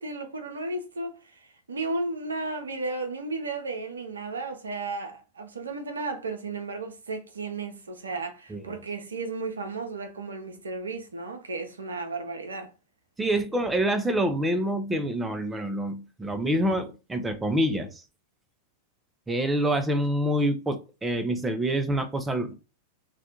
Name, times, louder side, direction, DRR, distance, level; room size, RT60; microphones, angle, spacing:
voice 1, 0.0-12.7, right 3 dB, 75° right, 0.5 m, -34 dB
voice 2, 13.2-18.0 19.3-22.5, right 1 dB, 10° right, 0.4 m, -26 dB
2.4 x 2.2 x 2.8 m
figure-of-eight pair, 90°, 0 cm